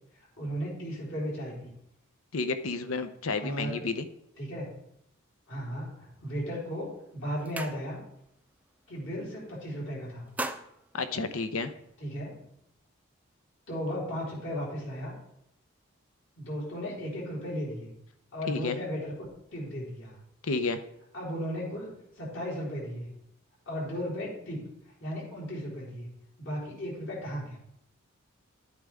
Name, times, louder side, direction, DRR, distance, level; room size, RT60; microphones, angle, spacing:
voice 1, 0.4-1.7 3.4-3.8 4.4-4.7 5.5-8.0 8.9-10.3 12.0-12.3 13.7-15.1 16.4-17.9 18.3-20.2 21.1-23.1 23.7-24.7 25.0-26.1 26.4-27.6, equal, 60° left, -6 dB, 4.2 m, -35 dB
voice 2, 2.3-4.1 10.9-11.7 18.5-18.8 20.4-20.8, left 3 dB, 75° left, 11 dB, 0.8 m, -31 dB
sound 1, 6.6-6.8 7.1-8.3 8.6-8.9 9.2-9.8 10.1-12.0, right 2 dB, 5° right, 0.4 m, -40 dB
11.0 x 8.7 x 3.6 m, 0.79 s
head